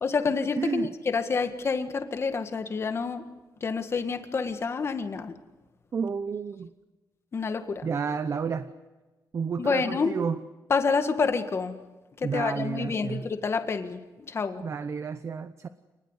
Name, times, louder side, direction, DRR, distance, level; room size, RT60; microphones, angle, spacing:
voice 1, 0.0-3.3 3.6-5.3 7.3-7.9 9.6-10.1 10.7-11.8 12.3-14.6, left 5 dB, 35° left, 8 dB, 1.8 m, -28 dB
voice 2, 0.6-0.9 5.9-6.7 7.8-8.7 9.3-10.4 12.2-13.3 14.6-15.7, right 6 dB, 40° right, 11 dB, 0.9 m, -31 dB
28.5 x 20.0 x 8.1 m, 1.2 s
wide cardioid pair, 145°, 7 cm